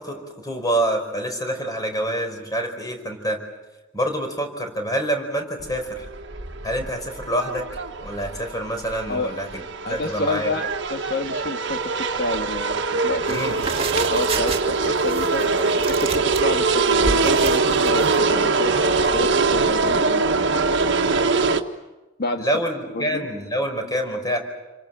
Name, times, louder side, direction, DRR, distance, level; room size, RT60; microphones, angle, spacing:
voice 1, 0.0-3.4 3.9-6.0 6.6-7.7 8.0-9.5 9.9-10.5 13.3-13.6 22.4-24.4, right 1 dB, 20° left, 5 dB, 5.0 m, -26 dB
sound 1, 5.6-21.6, right 4 dB, 65° right, 1.6 m, -22 dB
voice 2, 9.8-13.6 14.1-20.3 22.2-22.5 22.9-23.3, left 2 dB, 55° left, 6 dB, 1.9 m, -29 dB
sound 2, 13.2-18.2, right 3 dB, 30° right, 2.3 m, -31 dB
29.0 x 25.0 x 7.7 m, 1.1 s
head